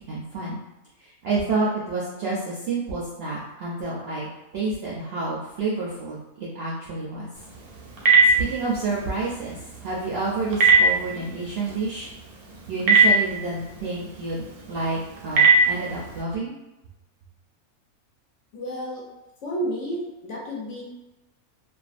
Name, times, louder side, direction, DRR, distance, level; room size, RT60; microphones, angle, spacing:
voice 1, 0.1-0.6 1.0-4.3 4.5-7.3 8.4-9.6 9.8-12.1 12.7-16.6, right 3 dB, 65° right, -6 dB, 0.6 m, -29 dB
Telephone, 7.3-16.2, right 3 dB, 90° right, 1.1 m, -23 dB
voice 2, 18.5-19.0 19.4-20.8, equal, 65° left, -3 dB, 0.8 m, -31 dB
2.5 x 2.3 x 2.4 m, 1.0 s
omnidirectional pair, 1.5 m